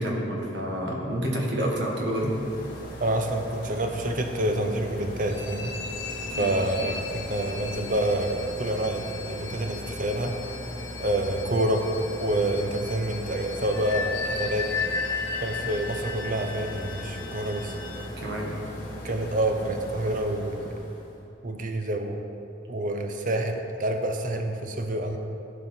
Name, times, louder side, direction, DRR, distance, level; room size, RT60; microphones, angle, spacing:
voice 1, 0.0-2.3 6.4-6.5 18.2-18.5, equal, 60° right, -2 dB, 1.8 m, -28 dB
sound 1, 1.8-21.2, equal, 50° left, 1.7 m, -40 dB
voice 2, 3.0-5.7 6.4-10.4 11.0-11.9 12.2-14.7 15.4-17.8 19.0-20.7 21.4-22.2 22.7-25.2, right 1 dB, 45° right, 4 dB, 0.8 m, -27 dB
sound 2, 5.2-18.1, left 5 dB, 85° left, 1.2 m, -36 dB
15.0 x 5.2 x 4.4 m, 2.8 s
head